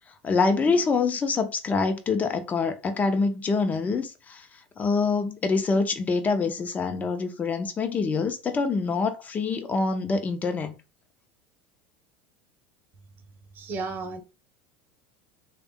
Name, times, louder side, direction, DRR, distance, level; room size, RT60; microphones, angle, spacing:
voice 1, 0.2-4.4 4.8-10.7, left 4 dB, 30° left, 0.8 m, -25 dB
voice 2, 13.6-14.2, right 3 dB, 40° right, 0.9 m, -33 dB
3.4 x 2.4 x 3.6 m
hypercardioid pair, 80°, 5 cm